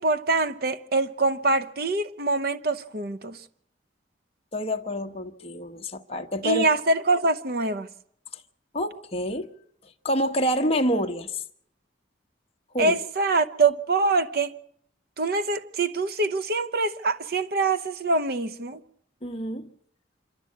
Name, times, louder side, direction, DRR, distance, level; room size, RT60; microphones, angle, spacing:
voice 1, 0.0-3.4 6.4-7.9 12.8-14.5 15.2-18.8, right 3 dB, 55° right, 0.8 m, -24 dB
voice 2, 4.5-6.7 8.7-9.5 10.0-11.4 12.7-13.0 19.2-19.7, equal, 30° left, 1.0 m, -27 dB
26.0 x 12.5 x 8.4 m
head